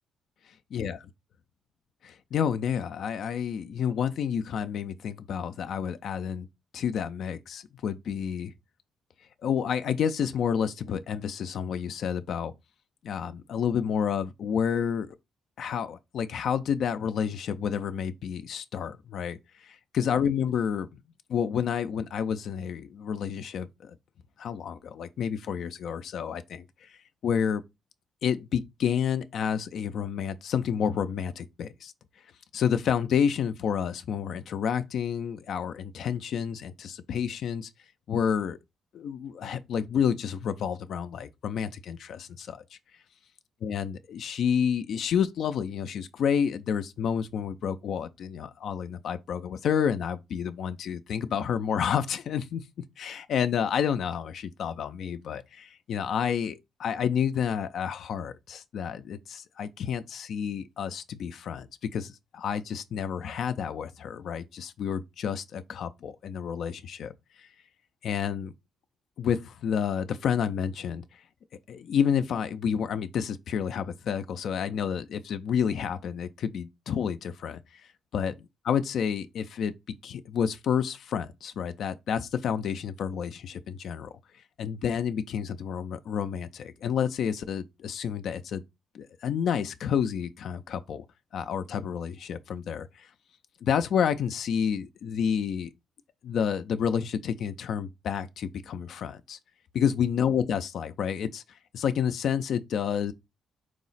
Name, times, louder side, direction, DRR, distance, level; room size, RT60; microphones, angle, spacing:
voice 1, 2.0-6.5 6.7-8.5 9.4-12.5 13.0-15.2 15.6-21.0 21.3-24.0 24.4-26.9 27.2-27.6 28.2-31.9 32.5-37.7 38.1-38.6 38.9-42.8 43.6-52.6 53.0-67.1 67.4-67.5 68.0-68.5 69.2-71.0 71.7-77.8 78.1-78.3 78.7-79.7 80.0-84.1 84.6-88.6 88.9-91.0 91.3-93.1 93.6-95.7 96.2-99.4 99.7-101.4 101.7-103.1, left 8 dB, 65° left, 0.4 m, -29 dB
4.7 x 2.0 x 3.9 m
cardioid pair, 90°, 0 cm